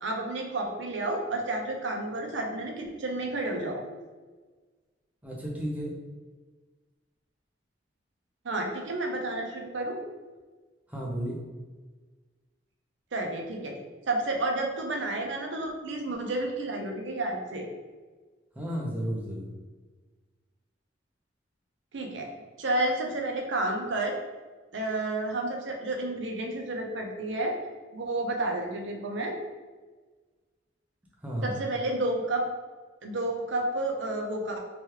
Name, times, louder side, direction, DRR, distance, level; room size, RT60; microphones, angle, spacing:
voice 1, 0.0-3.8 8.4-10.0 13.1-13.8 14.1-17.7 21.9-22.3 22.6-24.2 24.7-27.6 27.9-29.3 31.4-32.4 33.0-34.6, right 2 dB, 80° right, 2 dB, 0.6 m, -31 dB
voice 2, 5.2-5.9 10.9-11.4 18.5-19.6 31.2-31.6, equal, 10° right, -3 dB, 0.6 m, -33 dB
2.9 x 2.3 x 3.1 m, 1.3 s
head